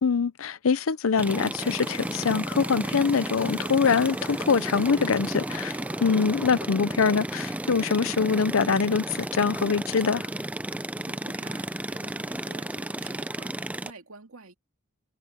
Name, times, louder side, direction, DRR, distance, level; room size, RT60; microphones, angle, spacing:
voice 1, 0.0-10.3, left 5 dB, 70° left, 0.6 m, -24 dB
sound 1, 1.2-13.9, right 1 dB, 5° right, 0.5 m, -33 dB
sound 2, 1.6-6.6, left 5 dB, 40° left, 4.4 m, -48 dB
voice 2, 11.0-14.5, right 3 dB, 85° right, 2.3 m, -49 dB
head